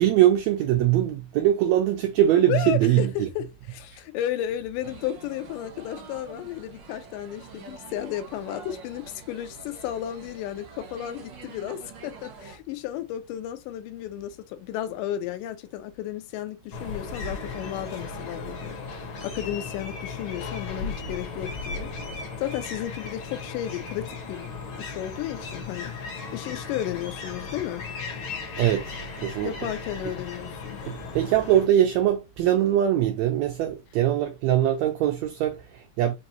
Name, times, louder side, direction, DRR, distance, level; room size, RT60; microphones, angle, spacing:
voice 1, 0.0-3.3 28.6-29.0 29.2-29.5 30.9-36.1, right 12 dB, 90° right, 1.5 m, -22 dB
voice 2, 2.5-21.9 22.4-26.0 26.3-27.8 29.4-30.8, left 12 dB, 85° left, 2.2 m, -33 dB
sound 1, 4.8-12.6, right 5 dB, 65° right, 1.1 m, -46 dB
sound 2, 16.7-31.7, left 4 dB, 55° left, 1.6 m, -36 dB
5.4 x 2.6 x 2.8 m
omnidirectional pair, 3.7 m